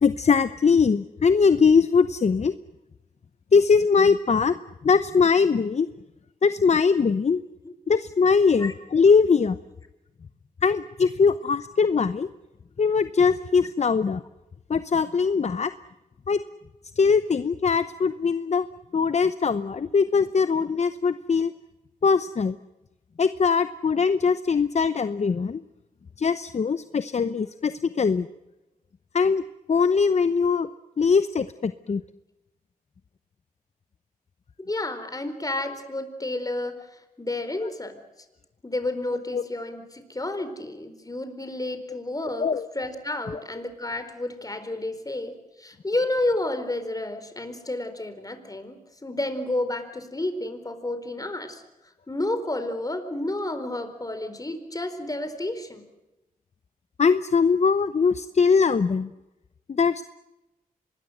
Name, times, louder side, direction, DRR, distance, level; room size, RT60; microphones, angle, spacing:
voice 1, 0.0-2.5 3.5-4.5 4.8-5.9 6.4-7.4 7.9-9.6 10.6-12.3 12.8-14.2 14.7-15.7 16.3-16.4 17.0-18.7 18.9-21.5 22.0-22.6 23.2-25.6 26.2-28.3 29.1-29.4 29.7-30.7 31.0-32.0 37.6-37.7 39.3-39.4 42.4-42.7 43.3-43.4 57.0-59.1 59.7-60.0, left 5 dB, 45° left, 13 dB, 0.8 m, -21 dB
voice 2, 34.6-38.0 38.6-42.5 42.7-51.6 52.1-55.9, left 2 dB, 25° left, 9 dB, 4.3 m, -31 dB
25.0 x 21.0 x 8.0 m, 0.98 s
cardioid pair, 65°, 15 cm